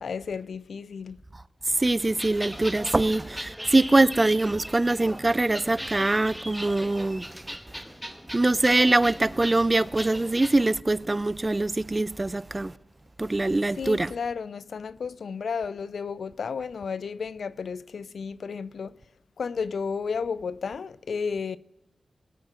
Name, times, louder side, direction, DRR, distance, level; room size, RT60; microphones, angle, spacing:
voice 1, 0.0-1.2 13.8-18.9 19.4-21.6, left 5 dB, 80° left, 0.4 m, -32 dB
voice 2, 1.8-7.2 8.3-12.7 13.2-14.1, right 2 dB, 30° right, 0.4 m, -23 dB
sound 1, 2.0-10.5, equal, 5° right, 1.3 m, -39 dB
20.0 x 8.8 x 3.7 m
cardioid pair, 60°, 0 cm